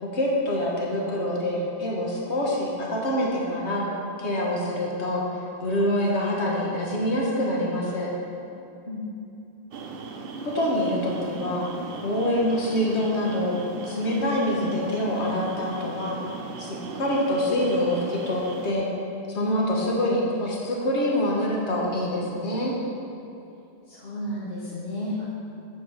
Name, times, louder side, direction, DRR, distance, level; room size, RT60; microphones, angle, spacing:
voice 1, 0.0-3.9 4.2-5.2 5.6-8.1 10.4-11.7 12.0-13.6 13.8-16.2 16.6-18.9 19.3-22.7, left 1 dB, 90° left, -3 dB, 1.6 m, -25 dB
sound 1, 9.7-18.7, right 3 dB, 65° right, 0.8 m, -38 dB
voice 2, 23.9-25.3, left 1 dB, 65° left, -6 dB, 1.2 m, -32 dB
7.4 x 5.2 x 6.4 m, 2.8 s
omnidirectional pair, 1.1 m